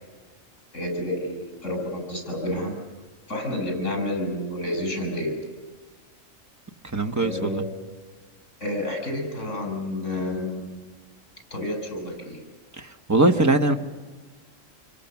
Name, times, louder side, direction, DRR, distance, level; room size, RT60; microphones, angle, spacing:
voice 1, 0.7-2.8 3.3-5.4 7.2-7.8 8.6-10.8 11.5-12.4, left 1 dB, 65° left, 3 dB, 7.0 m, -30 dB
voice 2, 6.9-7.6 12.8-13.7, right 2 dB, 15° right, 5 dB, 1.0 m, -21 dB
27.0 x 23.5 x 7.0 m, 1.4 s
omnidirectional pair, 1.4 m